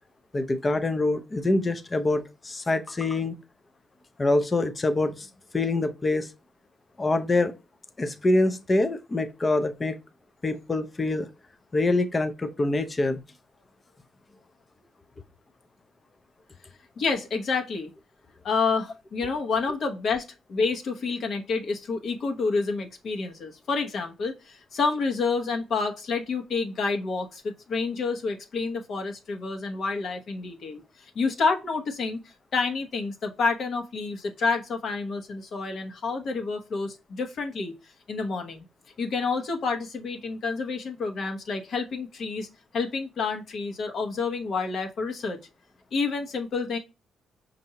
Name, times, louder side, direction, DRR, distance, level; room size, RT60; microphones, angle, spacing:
voice 1, 0.3-3.4 4.2-6.3 7.0-7.5 8.0-10.0 10.4-11.3 11.7-13.2, left 2 dB, 25° left, 0.5 m, -25 dB
voice 2, 17.0-17.9 18.4-37.7 38.1-38.7 39.0-42.5 42.7-45.4 45.9-46.8, left 4 dB, 60° left, 0.9 m, -29 dB
5.4 x 2.6 x 2.8 m
cardioid pair, 90°, 0 cm